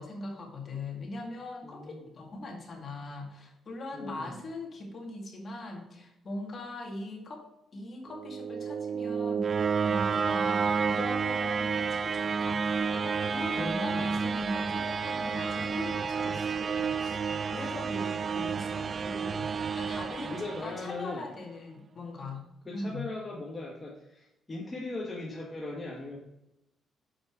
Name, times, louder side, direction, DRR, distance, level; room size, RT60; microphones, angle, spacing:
voice 1, 0.0-7.5 7.7-22.4 22.7-23.0, left 2 dB, 45° left, 1 dB, 2.1 m, -41 dB
voice 2, 1.6-2.1 3.9-4.4 13.5-14.1 20.3-21.3 22.6-26.2, left 2 dB, 25° left, -3 dB, 1.4 m, -39 dB
sound 1, 8.1-21.1, right 5 dB, 40° right, 0.3 m, -30 dB
7.0 x 5.2 x 4.6 m, 0.89 s
cardioid pair, 90°, 0 cm